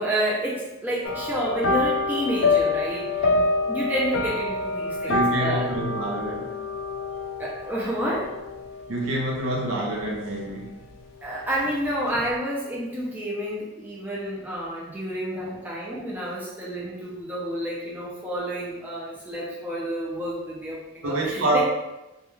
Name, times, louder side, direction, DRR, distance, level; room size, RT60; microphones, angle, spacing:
voice 1, 0.0-3.3 3.7-5.7 7.4-8.3 11.2-21.6, equal, 10° right, -6 dB, 0.4 m, -29 dB
sound 1, 1.0-10.6 10.9-11.3 11.6-11.7, left 3 dB, 75° left, 0.3 m, -27 dB
voice 2, 5.0-6.5 8.9-10.7 15.3-15.7 21.0-21.6, right 1 dB, 75° right, -1 dB, 0.6 m, -27 dB
2.3 x 2.2 x 3.0 m, 1.0 s
head